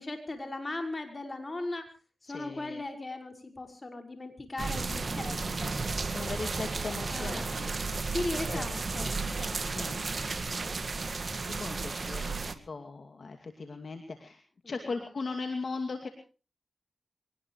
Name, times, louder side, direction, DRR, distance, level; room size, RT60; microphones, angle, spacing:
voice 1, 0.0-1.9 2.2-6.3 7.1-7.7 8.0-10.0 10.6-11.0 14.6-14.9, left 2 dB, 40° left, 5 dB, 5.5 m, -38 dB
voice 2, 2.3-2.8 6.1-7.8 8.5-8.7 9.7-10.0 10.6-16.1, left 4 dB, 60° left, 5 dB, 2.5 m, -39 dB
sound 1, 4.6-12.5, right 4 dB, 55° right, 2.0 m, -33 dB
23.5 x 19.0 x 3.2 m, 0.36 s
cardioid pair, 45°, 0 cm